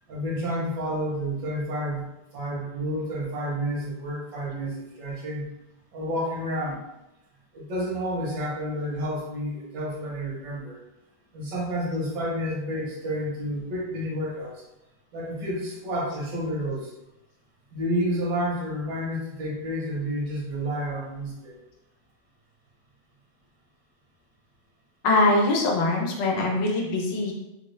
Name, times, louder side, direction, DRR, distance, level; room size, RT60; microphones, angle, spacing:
voice 1, 0.1-2.1 2.3-5.5 5.9-6.8 7.5-10.8 11.3-14.6 15.1-16.9 17.7-21.6, equal, 75° right, -3 dB, 1.5 m, -30 dB
voice 2, 25.0-27.3, left 2 dB, 85° left, 0 dB, 1.5 m, -22 dB
3.8 x 2.3 x 3.2 m, 0.93 s
omnidirectional pair, 1.9 m